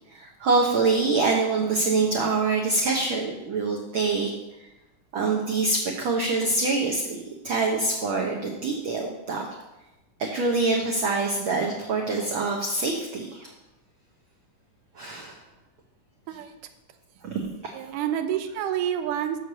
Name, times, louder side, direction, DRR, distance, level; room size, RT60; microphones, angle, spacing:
voice 1, 0.1-4.3 4.6-4.7 5.1-9.5 10.2-13.5 14.9-15.4 17.2-17.7, right 3 dB, 70° right, -1 dB, 1.2 m, -25 dB
voice 2, 17.7-19.4, right 10 dB, 90° right, 8 dB, 2.3 m, -28 dB
6.5 x 6.4 x 6.8 m, 0.98 s
omnidirectional pair, 3.6 m